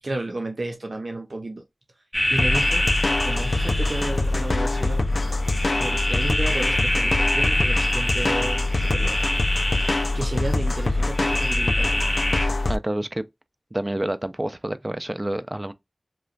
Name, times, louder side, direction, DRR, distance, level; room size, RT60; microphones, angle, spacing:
voice 1, 0.0-1.6 2.3-2.8 3.2-5.0 5.8-9.2 10.1-12.0, right 2 dB, 75° right, 0.6 m, -32 dB
sound 1, 2.1-12.5, left 1 dB, 20° left, 0.6 m, -26 dB
sound 2, 2.4-12.8, left 2 dB, 75° left, 0.3 m, -24 dB
voice 2, 12.7-13.3 13.7-15.7, right 1 dB, 30° right, 0.3 m, -28 dB
2.9 x 2.1 x 2.4 m
wide cardioid pair, 65°, 0 cm